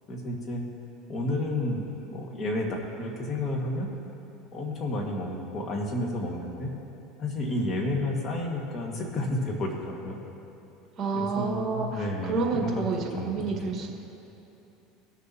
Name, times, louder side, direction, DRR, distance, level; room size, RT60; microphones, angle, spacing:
voice 1, 0.1-0.6 1.1-3.9 4.5-6.7 7.2-10.2 11.1-13.6, left 1 dB, 40° left, -1 dB, 2.1 m, -31 dB
voice 2, 11.0-13.9, right 4 dB, 35° right, 0 dB, 1.9 m, -29 dB
19.5 x 6.9 x 3.1 m, 2.9 s
supercardioid pair, 105°, 0 cm